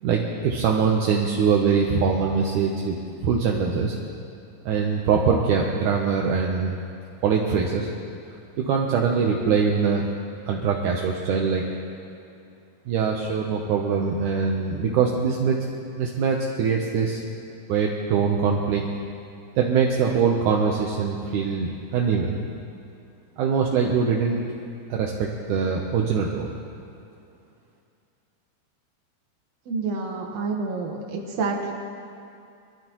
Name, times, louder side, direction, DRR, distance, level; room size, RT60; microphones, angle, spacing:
voice 1, 0.0-3.0 3.2-4.0 4.7-6.8 7.2-7.9 8.6-10.1 10.5-11.6 12.9-15.6 16.0-17.2 17.7-18.9 19.6-22.4 23.4-24.4 24.9-26.5, right 6 dB, 75° right, -1 dB, 1.9 m, -23 dB
voice 2, 29.7-31.7, right 4 dB, 55° right, 0 dB, 2.1 m, -28 dB
23.0 x 13.5 x 3.1 m, 2.5 s
omnidirectional pair, 4.6 m